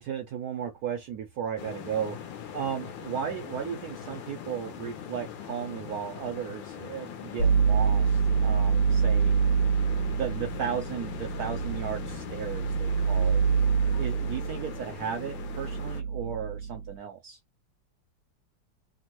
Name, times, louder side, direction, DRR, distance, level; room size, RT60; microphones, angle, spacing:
voice 1, 0.0-2.2 2.5-9.3 10.0-13.4 14.0-17.4, right 8 dB, 80° right, 0.8 m, -35 dB
sound 1, 1.6-16.0, left 9 dB, 75° left, 1.4 m, -41 dB
sound 2, 7.4-17.0, right 6 dB, 60° left, 1.2 m, -26 dB
3.5 x 2.1 x 2.9 m
omnidirectional pair, 2.2 m